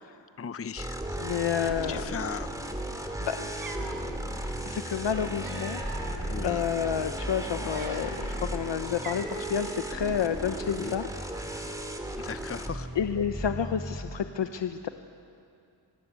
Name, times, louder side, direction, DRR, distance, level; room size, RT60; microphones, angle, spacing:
voice 1, 0.4-1.3 1.9-2.5 6.3-6.6 10.7-10.9 12.2-12.9, left 6 dB, 30° left, 11 dB, 0.7 m, -37 dB
sound 1, 0.8-14.0, right 1 dB, 10° right, 2.6 m, -35 dB
voice 2, 1.2-2.0 3.2-4.0 4.6-5.8 6.4-11.8 12.9-14.9, left 8 dB, 80° left, 8 dB, 1.0 m, -30 dB
Cat, 3.1-3.2 3.5-4.1 5.0-6.2 6.8-7.0 7.5-8.3 8.6-8.7 9.0-9.6, right 4 dB, 50° right, 4.0 m, -42 dB
sound 2, 3.8-4.6 5.3-5.4 5.7-6.9 7.6-8.7, left 5 dB, 65° left, 1.7 m, -49 dB
27.5 x 23.5 x 8.3 m, 2.5 s
wide cardioid pair, 110°, 43 cm